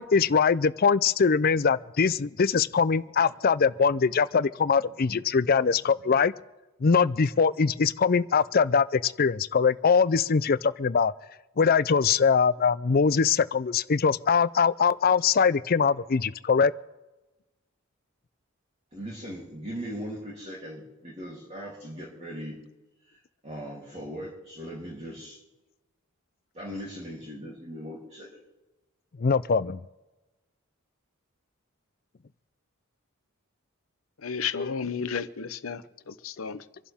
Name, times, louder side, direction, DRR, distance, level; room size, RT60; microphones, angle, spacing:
voice 1, 0.0-6.3 6.8-11.1 11.6-16.7 29.2-29.8 34.5-34.7, left 5 dB, 45° left, 16 dB, 0.5 m, -22 dB
voice 2, 18.9-22.6 23.1-25.4 26.5-28.4, equal, 30° right, -5 dB, 3.2 m, -39 dB
voice 3, 34.2-36.6, left 6 dB, 75° left, 12 dB, 0.9 m, -33 dB
26.5 x 11.5 x 3.6 m, 1.1 s
head